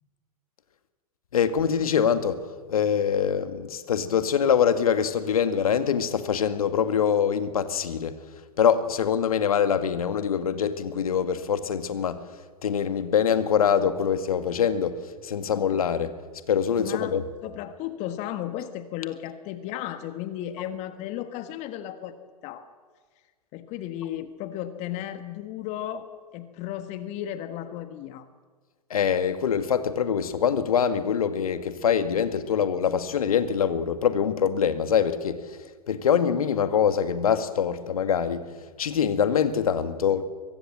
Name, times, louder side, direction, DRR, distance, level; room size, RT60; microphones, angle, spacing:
voice 1, 1.3-2.4 2.7-8.1 8.6-12.2 12.6-16.1 16.5-17.2 28.9-35.4 35.9-38.4 38.8-40.2, left 7 dB, 65° left, 2.0 m, -24 dB
voice 2, 16.8-22.1 22.4-22.7 23.5-26.1 26.3-28.3, left 11 dB, 35° left, 1.5 m, -34 dB
23.5 x 22.0 x 7.6 m
figure-of-eight pair, 105°, 20 cm